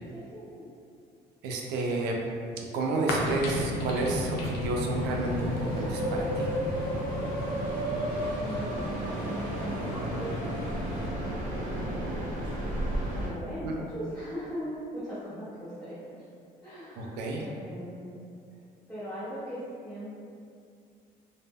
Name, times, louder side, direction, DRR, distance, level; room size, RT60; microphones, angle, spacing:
voice 1, 0.1-0.6 8.4-8.8 9.4-10.4 11.6-12.4 13.1-16.2 16.6-18.1 18.9-20.1, equal, 5° left, -13 dB, 0.7 m, -39 dB
voice 2, 1.4-2.2 2.7-6.5 13.6-13.8 17.0-17.5, right 2 dB, 85° right, 0 dB, 0.4 m, -30 dB
sound 1, 3.1-11.1, left 2 dB, 80° left, 0.5 m, -35 dB
sound 2, 4.8-13.3, right 1 dB, 50° right, 0.8 m, -32 dB
2.1 x 2.1 x 3.4 m, 2.4 s
cardioid pair, 110°, 17 cm